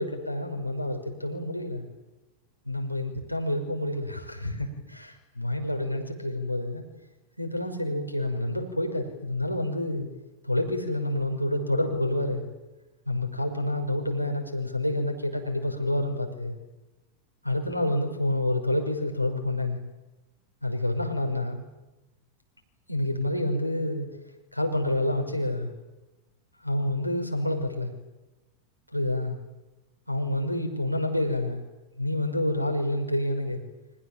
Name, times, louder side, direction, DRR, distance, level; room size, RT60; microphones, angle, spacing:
voice 1, 0.0-1.8 2.7-6.8 7.4-10.1 10.4-12.4 13.1-16.6 17.4-19.8 20.6-21.6 22.9-24.1 24.5-25.7 26.6-27.9 28.9-29.4 30.1-31.6 32.0-33.6, left 1 dB, 90° left, 3 dB, 5.8 m, -28 dB
29.5 x 26.0 x 7.5 m, 1.0 s
figure-of-eight pair, 90°, 0 cm